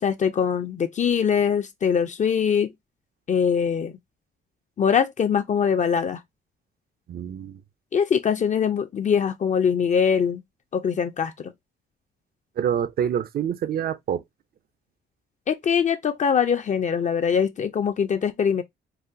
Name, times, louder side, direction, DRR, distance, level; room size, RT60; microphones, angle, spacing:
voice 1, 0.0-2.7 3.3-3.9 4.8-6.2 7.9-10.4 10.7-11.5 15.5-18.6, left 7 dB, 40° left, 0.4 m, -22 dB
voice 2, 7.1-7.6 12.6-14.2, right 9 dB, 50° right, 0.4 m, -26 dB
4.0 x 2.1 x 2.5 m
cardioid pair, 90°, 20 cm